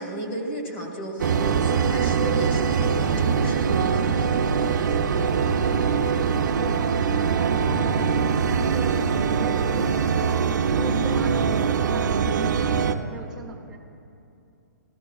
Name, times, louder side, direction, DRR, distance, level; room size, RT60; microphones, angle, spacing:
voice 1, 0.0-4.1, right 1 dB, 35° left, 1 dB, 1.7 m, -33 dB
sound 1, 1.2-12.9, right 6 dB, 70° right, 0.6 m, -23 dB
voice 2, 4.4-8.1 8.5-9.1 9.4-10.5 10.7-12.8 13.1-13.8, right 3 dB, 5° right, -3 dB, 0.8 m, -39 dB
14.0 x 14.0 x 2.3 m, 2.7 s
hypercardioid pair, 170°, 10 cm